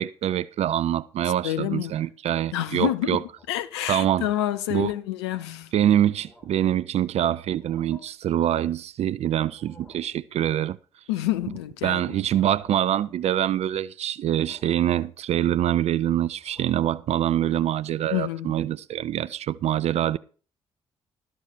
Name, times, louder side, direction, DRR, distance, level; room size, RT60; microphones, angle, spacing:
voice 1, 0.0-3.2 3.9-4.3 4.7-4.9 5.7-10.8 11.8-20.2, right 11 dB, 50° right, 0.4 m, -25 dB
voice 2, 1.4-1.9 2.5-3.2 3.5-5.7 11.1-12.2 18.0-18.5, left 13 dB, 75° left, 0.6 m, -28 dB
sound 1, 3.3-3.7 4.2-4.4 4.8-5.0 5.6-5.7 6.0-6.7 7.5-8.0 9.4-10.1 11.2-11.7 12.1-12.8 13.3-13.8 14.5-14.9 15.3-15.9 16.3-17.0, left 1 dB, ahead, 4.7 m, -56 dB
13.0 x 5.9 x 6.9 m
figure-of-eight pair, 40°, 14 cm